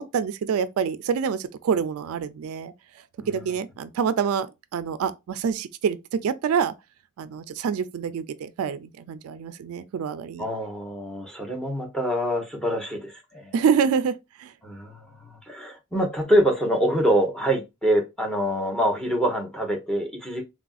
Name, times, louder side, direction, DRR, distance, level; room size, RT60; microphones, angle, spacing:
voice 1, 0.0-2.7 3.3-4.5 4.7-6.7 7.2-10.5 13.5-14.5, right 7 dB, 70° right, 0.3 m, -26 dB
voice 2, 10.4-13.5 14.6-20.4, equal, 5° left, 0.7 m, -25 dB
3.3 x 2.5 x 2.3 m
head